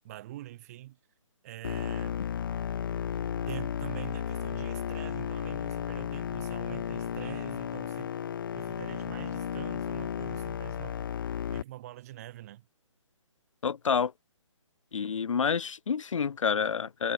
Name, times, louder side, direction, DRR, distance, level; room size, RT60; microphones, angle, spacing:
voice 1, 0.0-1.0 1.4-2.2 3.5-8.1 8.5-11.1 11.5-12.7, right 15 dB, 30° right, 7.7 m, -44 dB
sound 1, 1.6-11.6, left 9 dB, 40° left, 1.6 m, -34 dB
voice 2, 13.6-14.1 14.9-17.1, left 6 dB, 75° left, 0.6 m, -28 dB
hypercardioid pair, 160°, 16 cm